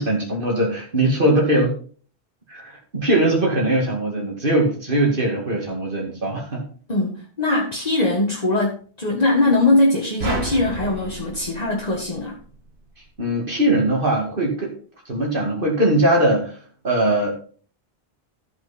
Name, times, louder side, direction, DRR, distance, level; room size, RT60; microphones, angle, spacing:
voice 1, 0.0-1.7 2.5-6.6 13.2-14.7 15.1-16.5 16.8-17.3, right 1 dB, 55° right, -1 dB, 2.4 m, -20 dB
voice 2, 6.9-12.4, left 2 dB, 40° left, -3 dB, 1.7 m, -21 dB
sound 1, 10.2-12.6, right 3 dB, 90° right, 1.9 m, -31 dB
14.0 x 5.6 x 4.2 m, 0.43 s
omnidirectional pair, 1.0 m